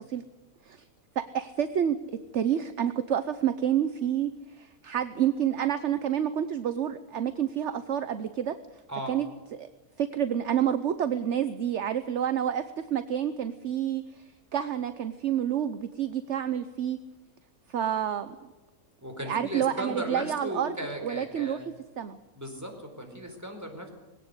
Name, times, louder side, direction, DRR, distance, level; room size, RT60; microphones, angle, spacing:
voice 1, 1.2-8.6 9.1-9.3 9.6-9.7 10.0-17.0 17.7-18.4 19.3-20.8 21.0-21.6 22.0-22.2, right 9 dB, 55° right, 11 dB, 1.1 m, -29 dB
voice 2, 19.0-21.7 22.4-23.9, right 1 dB, 10° right, 3 dB, 4.4 m, -36 dB
21.0 x 17.5 x 8.1 m, 1.2 s
omnidirectional pair, 1.5 m